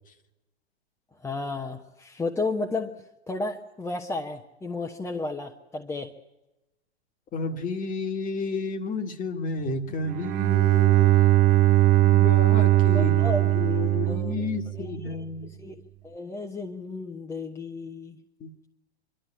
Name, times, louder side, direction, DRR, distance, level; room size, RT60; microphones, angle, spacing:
voice 1, 1.2-6.1 12.9-14.5 14.8-18.2, left 3 dB, 10° left, 1 dB, 1.1 m, -33 dB
voice 2, 7.3-11.1 12.0-15.5 18.4-18.5, left 3 dB, 25° left, 8 dB, 1.8 m, -31 dB
Bowed string instrument, 10.0-15.0, right 15 dB, 30° right, 1.1 m, -20 dB
25.0 x 12.5 x 9.8 m, 0.98 s
hypercardioid pair, 115°, 33 cm